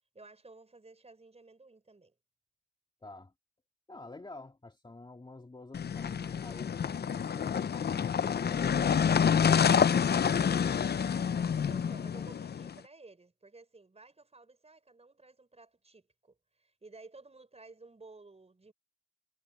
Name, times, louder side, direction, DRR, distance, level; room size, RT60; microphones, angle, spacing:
voice 1, 0.1-2.1 11.6-18.7, right 3 dB, 20° right, 6.6 m, -55 dB
voice 2, 3.0-3.3 3.9-10.8 12.1-12.2, left 2 dB, 15° left, 2.1 m, -50 dB
sound 1, 5.7-12.7, left 7 dB, 35° left, 0.7 m, -28 dB
cardioid pair, 90°, 30 cm